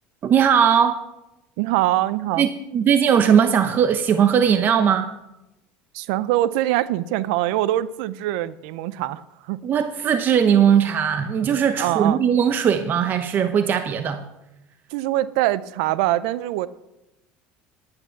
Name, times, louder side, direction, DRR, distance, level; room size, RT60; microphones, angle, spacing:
voice 1, 0.2-1.0 2.4-5.1 9.6-14.3, right 8 dB, 40° right, 9 dB, 0.8 m, -19 dB
voice 2, 1.6-2.5 5.9-9.6 11.8-12.2 14.9-16.7, right 15 dB, 75° right, 18 dB, 0.5 m, -23 dB
10.5 x 10.0 x 5.9 m, 0.91 s
supercardioid pair, 100°, 5 cm